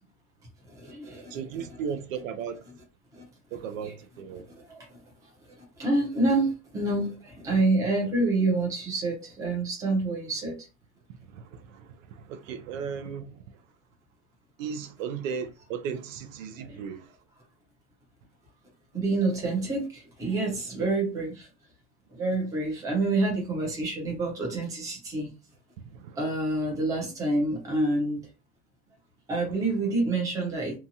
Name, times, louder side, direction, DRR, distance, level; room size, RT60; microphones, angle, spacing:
voice 1, 0.7-1.4 3.1-3.2 3.8-3.9 4.5-5.3 5.6-10.7 16.6-16.8 18.9-21.5 22.1-25.3 26.2-28.2 29.3-30.8, right 2 dB, 10° right, 0.6 m, -28 dB
voice 2, 1.3-2.6 3.5-4.5 8.0-8.1 11.2-13.6 14.6-17.1 20.8-20.9 25.8-26.2, right 7 dB, 65° right, 0.5 m, -36 dB
2.8 x 2.3 x 2.7 m
supercardioid pair, 155°, 42 cm